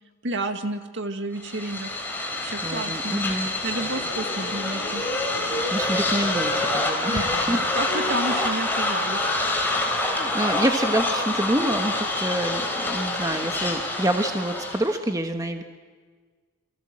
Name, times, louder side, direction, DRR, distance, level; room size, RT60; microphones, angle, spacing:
voice 1, 0.2-1.9 2.4-3.2 3.6-5.0 7.1-9.3, right 2 dB, 55° right, 6 dB, 2.2 m, -31 dB
sound 1, 1.4-15.0, left 2 dB, 10° left, 4.5 m, -26 dB
voice 2, 2.6-3.5 5.7-7.6 8.3-8.5 10.1-15.6, right 1 dB, 15° right, 5 dB, 1.3 m, -27 dB
28.5 x 24.5 x 7.7 m, 1.5 s
head